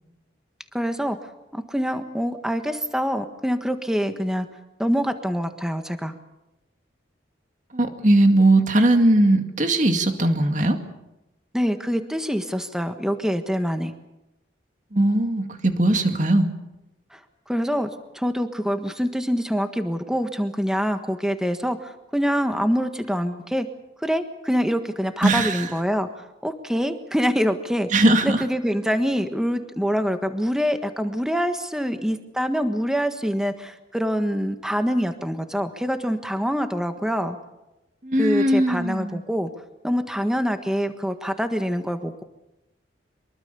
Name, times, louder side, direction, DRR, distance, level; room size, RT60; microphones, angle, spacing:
voice 1, 0.7-1.2 1.5-4.5 4.8-6.1 11.5-13.9 17.1-17.2 17.5-23.7 24.0-37.4 38.2-39.5 39.8-42.2, equal, 5° right, 7 dB, 1.5 m, -25 dB
voice 2, 7.7-10.8 14.9-16.5 25.2-25.6 27.9-28.4 38.0-39.2, right 1 dB, 40° right, 6 dB, 2.3 m, -19 dB
24.5 x 23.0 x 7.0 m, 0.95 s
head